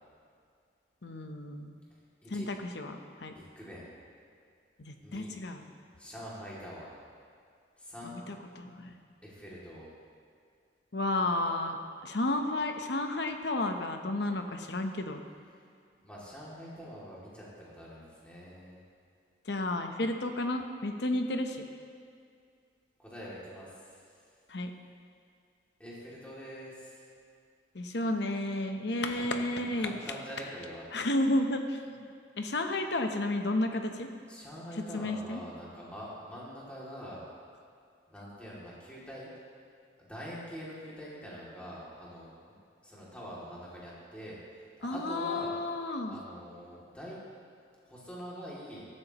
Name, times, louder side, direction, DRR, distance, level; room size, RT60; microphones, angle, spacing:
voice 1, 1.0-1.7 2.3-3.3 4.8-5.6 8.0-9.0 10.9-11.8 12.0-15.2 19.5-21.6 24.5-24.7 27.7-30.0 30.9-32.1 32.4-34.1 34.9-35.4 44.8-46.2, left 1 dB, 65° left, 5 dB, 0.9 m, -32 dB
voice 2, 3.3-3.9 5.0-5.3 6.0-6.9 7.8-8.1 9.2-9.9 16.0-18.8 23.0-24.1 25.8-27.1 29.0-29.4 29.8-30.8 34.3-37.2 38.1-39.3 40.0-42.3 42.8-45.5 46.1-47.2 47.8-48.8, equal, 5° left, -7 dB, 2.6 m, -45 dB
15.5 x 12.5 x 3.0 m, 2.3 s
head